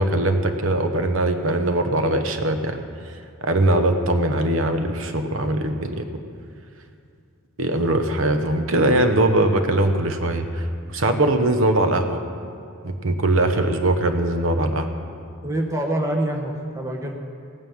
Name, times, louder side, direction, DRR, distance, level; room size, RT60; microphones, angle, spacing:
voice 1, 0.0-3.1 3.4-6.1 7.6-12.2 12.8-14.9, right 1 dB, 75° right, 7 dB, 1.0 m, -21 dB
voice 2, 15.4-17.2, right 1 dB, 15° right, 1 dB, 1.2 m, -25 dB
16.5 x 9.4 x 7.2 m, 2.3 s
head